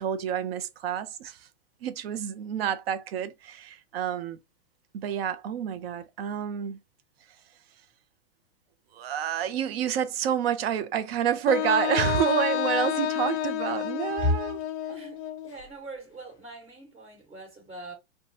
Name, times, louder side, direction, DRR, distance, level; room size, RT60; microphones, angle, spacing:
voice 1, 0.0-1.5 1.8-4.4 4.9-6.8 8.9-14.6, right 9 dB, 55° right, 0.5 m, -29 dB
Wind instrument woodwind instrument, 11.5-15.5, left 10 dB, 65° left, 0.5 m, -29 dB
voice 2, 14.9-17.9, left 1 dB, 15° right, 1.5 m, -34 dB
2.9 x 2.2 x 2.7 m
hypercardioid pair, 140°, 36 cm